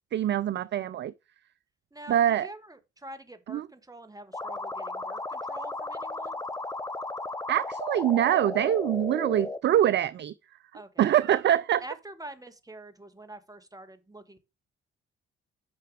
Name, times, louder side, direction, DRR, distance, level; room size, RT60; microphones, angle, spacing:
voice 1, 0.1-1.1 2.1-2.5 3.5-3.6 7.5-10.3 11.0-11.8, right 11 dB, 35° right, 0.4 m, -24 dB
voice 2, 1.9-6.4 10.7-11.3 11.8-14.4, right 1 dB, 10° right, 1.7 m, -46 dB
sound 1, 4.3-9.6, left 2 dB, 10° left, 0.8 m, -35 dB
6.9 x 5.6 x 5.0 m
hypercardioid pair, 40°, 31 cm